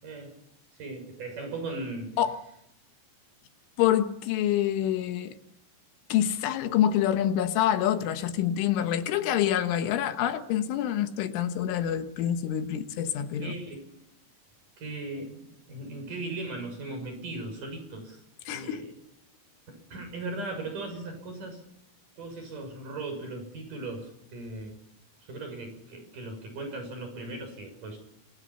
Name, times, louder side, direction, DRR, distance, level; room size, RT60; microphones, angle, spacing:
voice 1, 0.0-0.3 0.8-2.1 13.4-14.0 14.8-18.2 18.5-18.9 19.7-21.6 22.2-24.7 25.2-28.0, right 2 dB, 45° right, 6 dB, 8.0 m, -38 dB
voice 2, 3.8-5.4 6.1-13.5 18.5-18.8, left 10 dB, 80° left, 8 dB, 3.7 m, -26 dB
27.5 x 22.5 x 5.8 m, 0.78 s
omnidirectional pair, 5.6 m